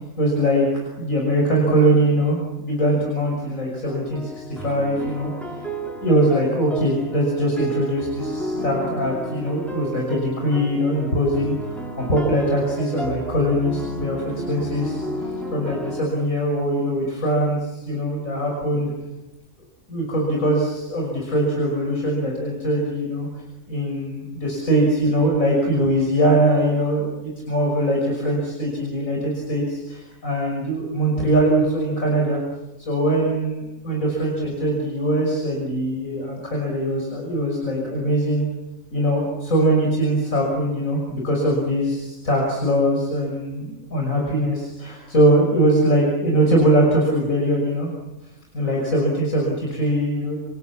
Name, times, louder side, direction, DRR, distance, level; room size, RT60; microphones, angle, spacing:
voice 1, 0.2-5.7 6.0-18.9 19.9-23.3 23.7-32.4 32.9-38.4 38.9-47.9 48.5-50.4, right 1 dB, 80° left, -1 dB, 6.4 m, -22 dB
sound 1, 3.9-16.0, right 1 dB, ahead, 4.7 m, -32 dB
29.0 x 27.5 x 7.3 m, 1.0 s
omnidirectional pair, 1.4 m